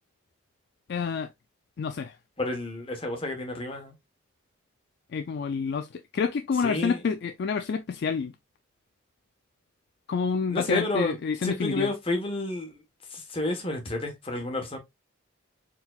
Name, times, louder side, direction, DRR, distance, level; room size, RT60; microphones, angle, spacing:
voice 1, 0.9-1.3 1.8-2.2 5.1-8.3 10.1-11.9, left 5 dB, 55° left, 0.3 m, -28 dB
voice 2, 2.4-3.9 6.6-7.0 10.5-11.2 11.4-12.8 13.1-14.8, left 2 dB, 25° left, 1.1 m, -30 dB
4.5 x 3.7 x 2.3 m
head